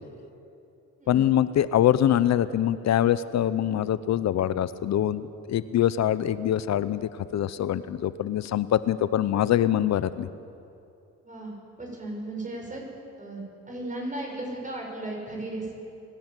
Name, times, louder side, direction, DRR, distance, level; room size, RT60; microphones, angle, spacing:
voice 1, 1.1-10.3, left 11 dB, 60° left, 15 dB, 0.8 m, -24 dB
voice 2, 11.8-12.8 13.2-15.7, right 2 dB, 25° right, -1 dB, 6.8 m, -35 dB
23.0 x 13.0 x 9.1 m, 2.7 s
cardioid pair, 90°, 30 cm